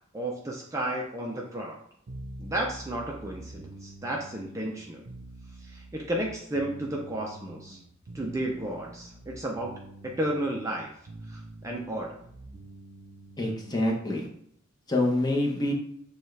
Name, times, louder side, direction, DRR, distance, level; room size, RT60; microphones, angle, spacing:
voice 1, 0.1-1.8 2.4-5.0 5.6-7.8 8.1-9.7 10.0-10.9 11.3-12.2, right 1 dB, 15° right, -1 dB, 0.5 m, -32 dB
sound 1, 2.1-13.9, right 1 dB, 65° right, 0.6 m, -46 dB
voice 2, 13.4-14.3 14.9-15.7, left 1 dB, 20° left, -1 dB, 0.8 m, -26 dB
6.9 x 2.3 x 3.2 m, 0.69 s
head